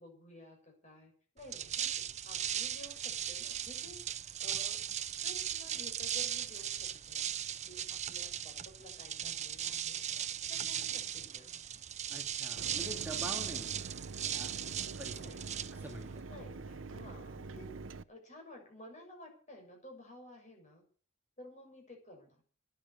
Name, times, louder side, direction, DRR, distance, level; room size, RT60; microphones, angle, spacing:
voice 1, 0.0-7.8 8.1-10.0 10.5-11.6 15.2-15.4 16.3-17.7 18.1-20.8 21.4-22.4, left 1 dB, 40° left, 1 dB, 6.9 m, -54 dB
sound 1, 1.4-16.2, right 10 dB, 35° right, 0.6 m, -38 dB
voice 2, 12.1-13.7 14.3-14.5 15.0-15.2 15.7-16.2, right 1 dB, 10° right, 1 dB, 2.2 m, -45 dB
Mechanisms, 12.6-18.0, right 3 dB, 75° right, 0.7 m, -45 dB
12.5 x 10.5 x 8.4 m, 0.43 s
head